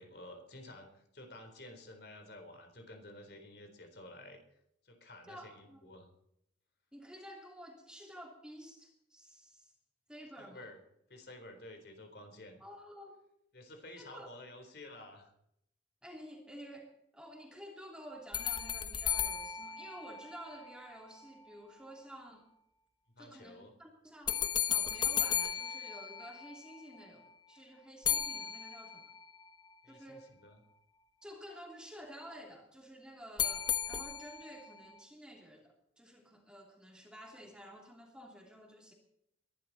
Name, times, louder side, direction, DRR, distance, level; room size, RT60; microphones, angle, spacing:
voice 1, 0.0-4.4 4.8-6.1 10.4-10.8 11.1-12.6 13.5-15.3 23.2-23.7 29.8-30.6, left 1 dB, 60° left, 5 dB, 4.0 m, -52 dB
voice 2, 5.3-5.9 6.9-9.7 10.1-10.7 12.6-13.2 13.9-14.3 16.0-22.5 23.2-29.1 29.9-30.3 31.2-38.9, equal, 5° right, 1 dB, 3.0 m, -51 dB
sound 1, 18.3-20.7 24.3-26.8 28.1-29.2 33.4-34.6, left 8 dB, 25° left, 1.0 m, -35 dB
22.0 x 12.0 x 4.2 m, 0.76 s
head